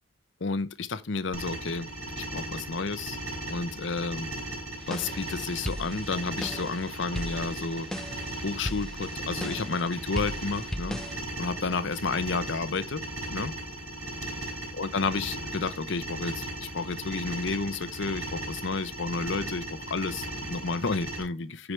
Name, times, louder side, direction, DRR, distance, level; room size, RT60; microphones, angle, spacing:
voice 1, 0.4-1.9 2.2-3.2 3.5-4.3 4.9-7.9 8.4-11.0 11.4-13.5 14.7-21.7, left 4 dB, 60° left, 0.7 m, -31 dB
sound 1, 1.3-21.2, right 1 dB, 85° right, 5.9 m, -37 dB
sound 2, 4.8-11.2, equal, 5° left, 0.5 m, -38 dB
13.0 x 4.8 x 3.2 m
head